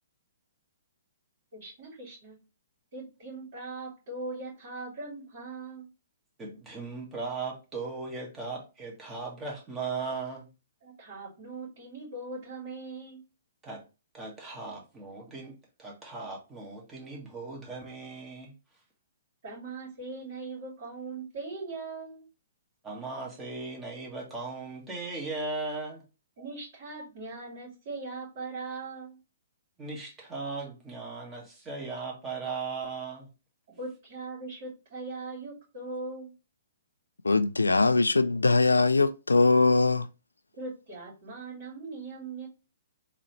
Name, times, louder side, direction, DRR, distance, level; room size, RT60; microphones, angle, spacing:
voice 1, 1.5-2.4 2.9-5.9 10.8-13.2 19.4-22.2 26.4-29.2 33.7-36.3 40.5-42.5, right 3 dB, 55° right, 2.4 m, -40 dB
voice 2, 6.4-10.5 13.6-13.8 14.1-18.5 22.8-26.0 29.8-33.3, right 4 dB, 15° right, 1.5 m, -37 dB
voice 3, 37.2-40.1, left 3 dB, 90° left, 0.3 m, -22 dB
3.8 x 2.9 x 3.2 m
figure-of-eight pair, 125°, 0 cm